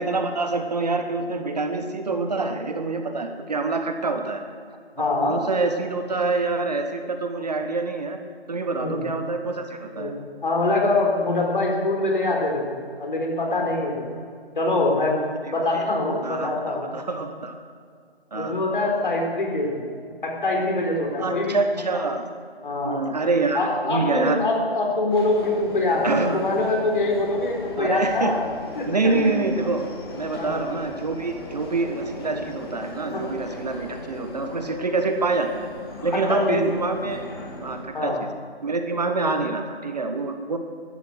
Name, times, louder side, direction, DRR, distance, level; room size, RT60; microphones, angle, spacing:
voice 1, 0.0-4.4 5.2-8.2 8.5-10.1 15.5-15.8 16.2-16.5 16.9-17.5 18.3-18.5 21.2-22.2 22.8-24.4 26.0-26.4 27.8-28.4 28.8-29.9 30.2-35.7 36.0-37.3 37.6-38.3 38.6-40.6, right 3 dB, 40° right, 6 dB, 1.2 m, -26 dB
voice 2, 5.0-5.4 8.8-9.1 10.0-10.1 10.4-14.2 14.5-15.2 15.5-16.9 18.3-19.9 20.2-22.0 22.6-23.0 23.5-28.4 28.8-29.4 30.3-30.6 33.1-33.2 36.1-36.6 37.9-38.2, left 2 dB, 50° left, 0 dB, 4.2 m, -24 dB
Subway metro underground, 25.1-37.8, left 2 dB, 25° left, 1.8 m, -38 dB
15.0 x 12.0 x 6.3 m, 2.2 s
figure-of-eight pair, 160°, 32 cm